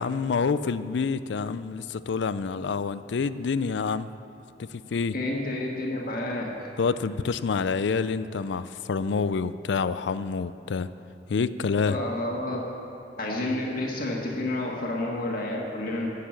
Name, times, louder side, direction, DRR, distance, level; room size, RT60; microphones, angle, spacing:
voice 1, 0.0-4.1 4.6-5.2 6.8-10.9 11.3-12.0, left 5 dB, 80° left, 14 dB, 0.4 m, -27 dB
voice 2, 5.1-6.7 11.9-12.6 13.2-16.1, left 1 dB, 55° left, -2 dB, 1.6 m, -30 dB
17.0 x 6.7 x 7.6 m, 2.7 s
head